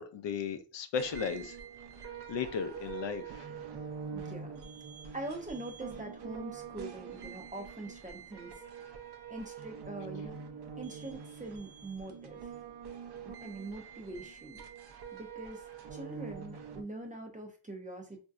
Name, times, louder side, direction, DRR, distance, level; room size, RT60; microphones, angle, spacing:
voice 1, 0.0-1.6 2.3-3.5, left 6 dB, 70° left, 0.6 m, -35 dB
sound 1, 0.9-16.8, right 6 dB, 60° right, 0.6 m, -45 dB
voice 2, 4.1-4.5 5.1-9.0 9.3-10.4 10.8-12.4 13.2-14.6 15.1-18.2, right 2 dB, 20° right, 0.5 m, -43 dB
4.2 x 2.6 x 2.3 m
wide cardioid pair, 180°, 46 cm